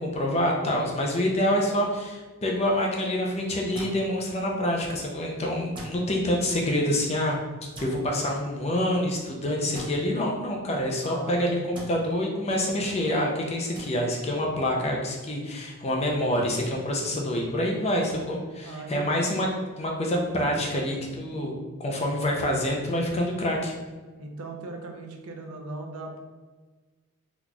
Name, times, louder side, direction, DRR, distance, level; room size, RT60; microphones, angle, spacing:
voice 1, 0.0-7.4 7.8-19.5 19.8-23.7, left 1 dB, 30° left, 0 dB, 0.5 m, -27 dB
sound 1, 3.7-4.0 5.7-6.0 7.7-7.9 9.7-9.9 11.7-11.9 13.7-13.8, right 1 dB, 20° right, 0.7 m, -39 dB
voice 2, 11.0-11.6 18.6-19.4 21.1-21.3 24.2-26.2, right 2 dB, 85° right, 3 dB, 0.6 m, -38 dB
3.9 x 3.0 x 2.3 m, 1.3 s
head